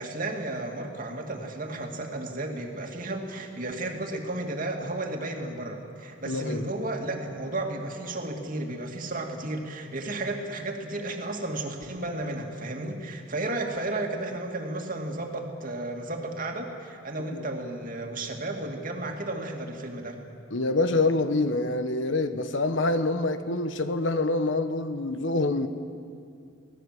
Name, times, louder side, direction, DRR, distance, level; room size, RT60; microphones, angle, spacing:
voice 1, 0.0-20.2, right 2 dB, 45° right, 2.5 m, -33 dB
voice 2, 6.2-6.7 17.3-17.4 20.5-25.7, left 2 dB, 65° left, 1.1 m, -26 dB
24.0 x 18.0 x 7.7 m
head